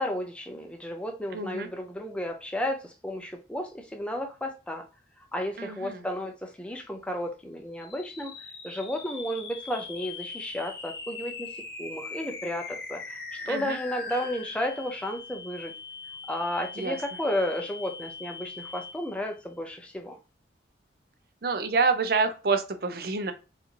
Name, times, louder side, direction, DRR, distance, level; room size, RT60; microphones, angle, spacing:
voice 1, 0.0-4.9 5.2-15.7 16.3-20.2, left 1 dB, 5° left, 0.4 m, -33 dB
voice 2, 1.3-1.7 5.6-6.0 13.5-13.8 16.8-17.0 21.4-23.3, right 4 dB, 55° right, 0.6 m, -27 dB
sound 1, 7.7-19.3, left 4 dB, 60° left, 0.9 m, -41 dB
4.1 x 2.6 x 2.8 m
head